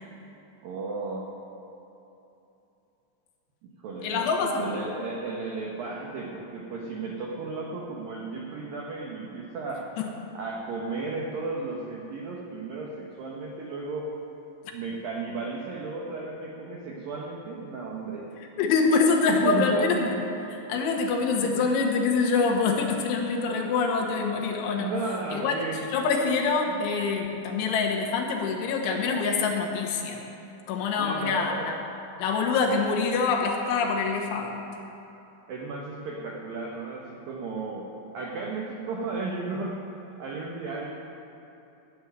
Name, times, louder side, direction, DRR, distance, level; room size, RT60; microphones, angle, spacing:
voice 1, 0.6-1.2 3.6-9.8 10.3-14.1 14.7-18.3 19.3-20.6 21.4-21.6 24.8-25.8 26.7-26.8 31.0-31.7 35.5-37.9 38.1-39.8 40.2-40.9, right 3 dB, 85° right, -2 dB, 2.0 m, -34 dB
voice 2, 4.0-4.8 10.0-10.1 18.6-20.1 20.7-24.9 25.3-25.6 25.9-30.2 30.7-31.8 32.2-34.6, left 4 dB, 75° left, 0 dB, 3.4 m, -25 dB
12.5 x 7.0 x 9.3 m, 2.9 s
omnidirectional pair, 5.7 m